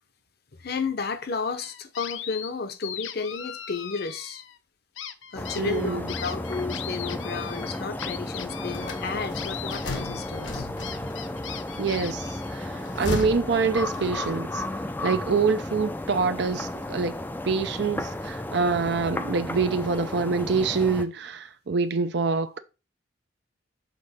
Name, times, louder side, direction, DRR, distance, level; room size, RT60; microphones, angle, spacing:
voice 1, 0.6-4.4 5.3-10.7, left 4 dB, 55° left, 0.7 m, -32 dB
sound 1, 1.6-2.5 2.8-4.6 5.0-12.8, left 10 dB, 90° left, 0.6 m, -39 dB
sound 2, 5.4-21.1, left 1 dB, 10° left, 0.4 m, -34 dB
voice 2, 5.6-6.1 11.8-14.6 15.0-17.2 17.4-22.6, right 4 dB, 65° right, 0.5 m, -26 dB
sound 3, 8.7-11.3 12.6-14.4, left 2 dB, 70° left, 1.1 m, -35 dB
6.8 x 3.6 x 4.2 m
head